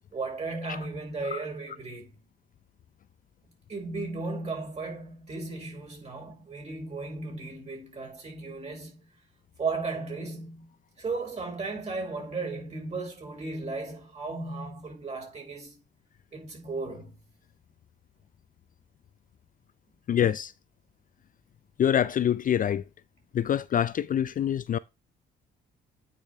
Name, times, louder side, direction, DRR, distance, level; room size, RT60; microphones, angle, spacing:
voice 1, 0.1-2.1 3.7-9.0 9.6-15.8 16.3-17.2, right 3 dB, 35° right, 4.3 m, -35 dB
voice 2, 20.1-20.5 21.8-22.8 23.3-24.8, left 9 dB, 45° left, 0.4 m, -25 dB
8.9 x 5.2 x 3.3 m
cardioid pair, 90°, 20 cm